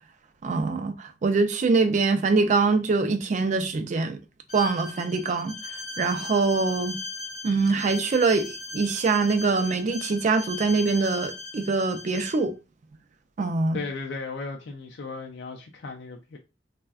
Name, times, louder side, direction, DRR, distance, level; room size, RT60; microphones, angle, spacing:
voice 1, 0.4-4.2 4.5-5.5 6.0-7.0 7.4-12.5 13.4-13.8, right 4 dB, 40° right, 0.3 m, -24 dB
Bowed string instrument, 4.5-12.4, left 3 dB, 40° left, 0.7 m, -38 dB
voice 2, 13.7-16.4, left 4 dB, 75° left, 0.4 m, -36 dB
3.4 x 2.1 x 2.3 m
head